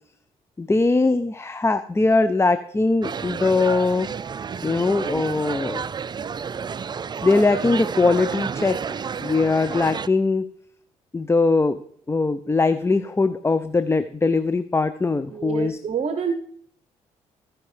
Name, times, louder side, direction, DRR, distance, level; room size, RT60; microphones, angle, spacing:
voice 1, 0.6-4.1 4.6-5.8 7.2-10.4 11.1-11.8 12.1-15.8, left 3 dB, 15° left, 12 dB, 0.6 m, -21 dB
sound 1, 3.0-10.1, right 6 dB, 30° right, 0.4 m, -30 dB
voice 2, 15.3-16.3, right 6 dB, 45° right, 7 dB, 0.9 m, -27 dB
16.5 x 5.8 x 3.3 m, 0.63 s
hypercardioid pair, 55°, 15 cm